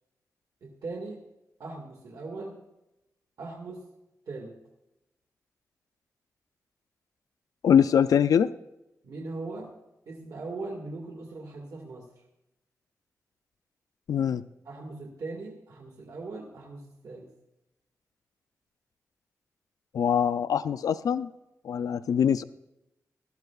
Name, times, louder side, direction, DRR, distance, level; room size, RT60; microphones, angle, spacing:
voice 1, 0.6-1.2 1.6-2.6 3.4-3.8 4.2-4.6 9.0-9.7 10.0-12.1 14.6-17.3, right 3 dB, 85° right, -1 dB, 1.8 m, -39 dB
voice 2, 7.6-8.5 14.1-14.4 19.9-21.3 21.6-22.4, left 8 dB, 85° left, 14 dB, 0.3 m, -23 dB
18.5 x 12.5 x 2.3 m, 0.91 s
wide cardioid pair, 95°, 6 cm